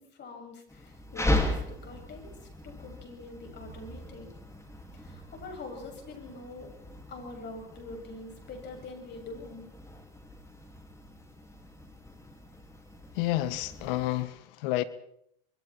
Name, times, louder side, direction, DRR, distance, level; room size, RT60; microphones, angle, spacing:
voice 1, 0.0-2.3 2.6-4.4 4.9-6.7 7.1-9.7, left 2 dB, 35° left, 7.6 m, -44 dB
sound 1, 0.7-14.2, left 1 dB, 10° left, 4.8 m, -37 dB
voice 2, 13.1-14.8, left 15 dB, 65° left, 1.7 m, -30 dB
26.0 x 22.5 x 4.5 m
hypercardioid pair, 95°, 30 cm